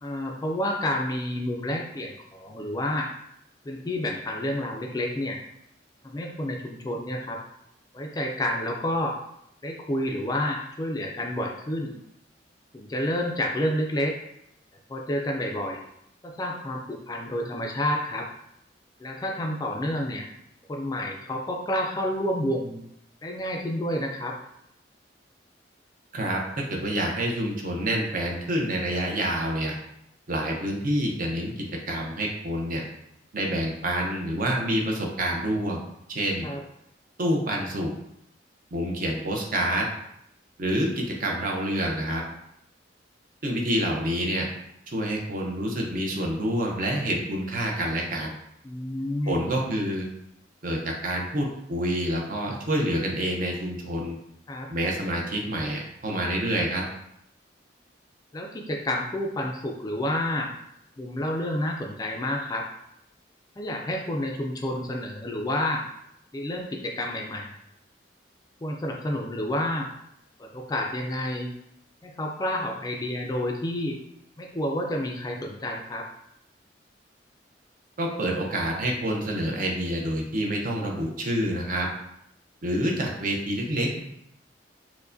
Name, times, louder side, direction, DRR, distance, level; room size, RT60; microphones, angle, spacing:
voice 1, 0.0-3.1 3.6-5.4 6.0-7.4 7.9-9.2 9.6-12.0 12.7-14.2 14.9-15.8 16.2-18.3 19.0-20.3 20.7-22.8 23.2-24.4 36.4-36.6 48.6-49.4 54.5-54.7 58.3-60.5 61.0-62.7 63.6-65.8 66.3-67.5 68.6-69.9 70.4-71.5 72.0-74.0 74.4-76.1, left 1 dB, 20° left, 1 dB, 0.3 m, -29 dB
voice 2, 26.1-29.7 30.3-32.8 33.3-35.8 36.1-36.5 37.2-37.9 38.7-39.9 40.6-42.2 43.4-44.5 44.9-48.3 49.3-50.1 50.6-54.2 54.7-56.8 78.0-81.9 82.6-84.0, right 1 dB, 50° right, 0 dB, 0.6 m, -27 dB
4.5 x 2.1 x 2.5 m, 0.77 s
head